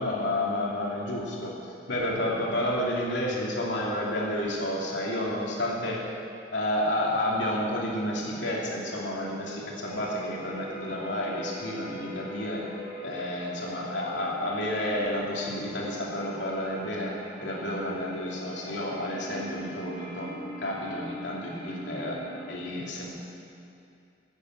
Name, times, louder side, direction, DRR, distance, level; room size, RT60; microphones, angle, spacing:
voice 1, 0.0-1.5 1.9-6.0 6.5-12.6 13.0-17.1 17.4-20.3 20.6-22.2 22.5-23.1, left 1 dB, 75° left, -3 dB, 2.7 m, -30 dB
sound 1, 9.8-22.6, right 1 dB, 35° left, 3.7 m, -42 dB
12.0 x 8.0 x 8.1 m, 2.5 s
head